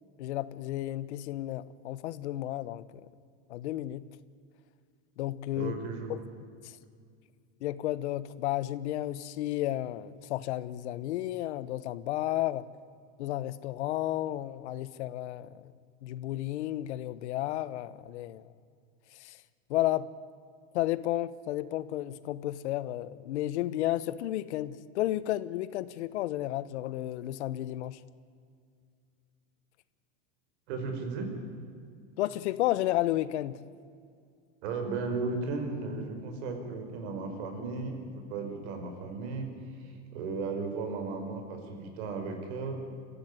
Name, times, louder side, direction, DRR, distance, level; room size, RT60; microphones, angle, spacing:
voice 1, 0.2-3.1 3.5-4.0 5.2-5.7 6.1-6.2 6.6-6.8 7.6-12.7 13.2-15.7 16.0-18.5 19.1-19.4 19.7-20.1 20.7-28.0 32.2-33.6, left 14 dB, 80° left, 1.1 m, -32 dB
voice 2, 5.5-6.2 30.7-31.3 34.6-42.8, right 4 dB, 65° right, 5.3 m, -35 dB
25.0 x 15.5 x 9.5 m
supercardioid pair, 140°, 34 cm